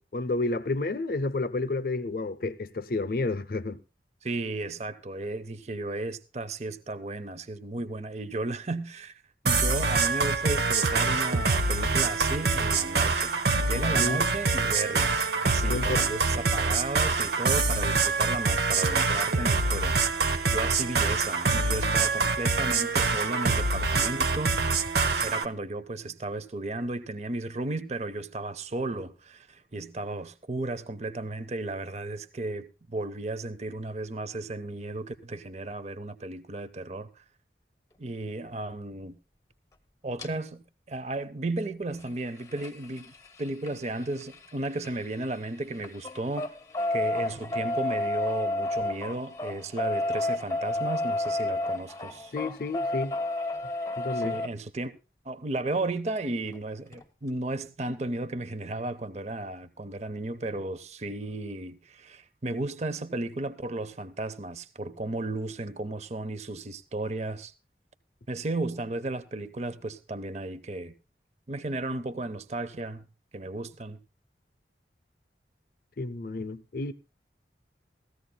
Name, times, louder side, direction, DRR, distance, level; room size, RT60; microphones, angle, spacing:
voice 1, 0.0-3.8 14.0-14.2 15.6-16.4 52.3-53.1 54.0-54.4 76.0-76.9, left 2 dB, 55° left, 0.6 m, -31 dB
voice 2, 4.2-15.2 15.4-24.6 25.2-37.2 38.0-39.2 40.0-40.6 40.9-43.1 43.4-46.5 46.9-52.3 54.1-54.9 55.3-67.5 68.3-70.9 71.5-73.1 73.3-74.0, right 2 dB, 40° right, 0.6 m, -34 dB
sound 1, 9.5-25.5, right 4 dB, 75° right, 1.0 m, -25 dB
sound 2, 40.2-40.3 41.9-45.5 45.8-54.5 56.2-56.3 56.5-56.6 56.9-57.0, left 2 dB, 20° left, 0.9 m, -31 dB
18.0 x 14.5 x 2.2 m
head